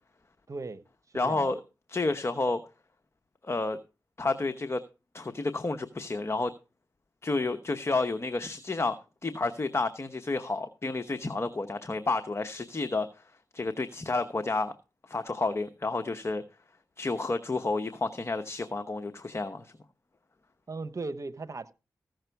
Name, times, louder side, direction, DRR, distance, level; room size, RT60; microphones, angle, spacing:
voice 1, 0.5-0.8 1.1-1.5 20.7-21.7, right 3 dB, 50° right, 1.0 m, -37 dB
voice 2, 1.1-1.6 1.9-2.6 3.4-3.8 4.2-4.8 5.1-6.5 7.2-9.0 9.2-13.2 13.5-14.7 15.1-16.4 17.0-19.7, left 3 dB, 40° left, 1.0 m, -30 dB
15.0 x 6.5 x 4.6 m
cardioid pair, 45°, 7 cm